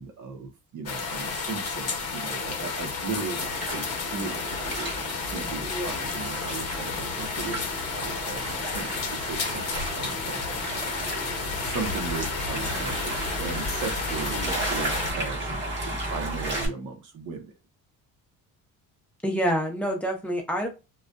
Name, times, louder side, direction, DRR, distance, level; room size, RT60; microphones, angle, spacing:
voice 1, 0.0-4.9 5.3-10.7 11.6-15.5 15.8-17.5, right 4 dB, 50° right, 5 dB, 0.8 m, -37 dB
sound 1, 0.9-15.1, left 4 dB, 40° left, 0.9 m, -32 dB
sound 2, 3.4-16.7, right 2 dB, 30° right, 1.1 m, -34 dB
voice 2, 5.6-6.0 19.2-20.7, equal, 5° left, 1 dB, 0.7 m, -27 dB
2.4 x 2.3 x 2.2 m, 0.28 s
cardioid pair, 110°, 38 cm